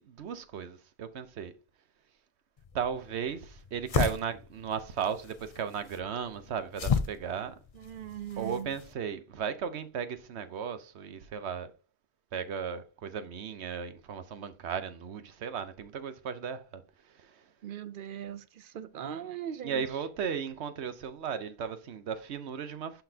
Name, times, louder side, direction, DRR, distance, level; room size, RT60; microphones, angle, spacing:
voice 1, 0.0-1.5 2.7-7.6 8.4-11.7 12.3-17.5 19.6-23.0, right 7 dB, 90° right, 1.1 m, -36 dB
sound 1, 2.6-8.9, left 6 dB, 45° left, 0.5 m, -35 dB
voice 2, 7.8-8.7 17.6-19.8, right 9 dB, 60° right, 0.7 m, -40 dB
11.5 x 4.0 x 2.8 m
omnidirectional pair, 1.1 m